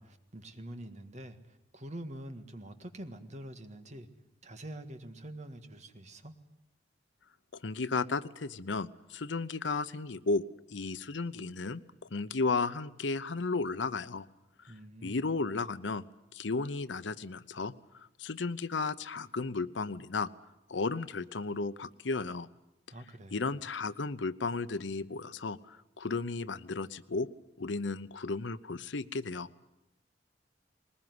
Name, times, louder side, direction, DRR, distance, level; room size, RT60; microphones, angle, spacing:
voice 1, 0.0-1.4 1.7-4.1 4.4-6.4 14.7-15.2 22.9-23.6, right 1 dB, 40° right, 8 dB, 1.7 m, -45 dB
voice 2, 7.5-14.3 14.6-14.7 15.0-16.0 16.3-20.3 20.7-22.5 23.3-27.3 27.6-29.5, left 3 dB, 85° left, 15 dB, 0.8 m, -34 dB
21.0 x 20.0 x 9.6 m, 0.88 s
head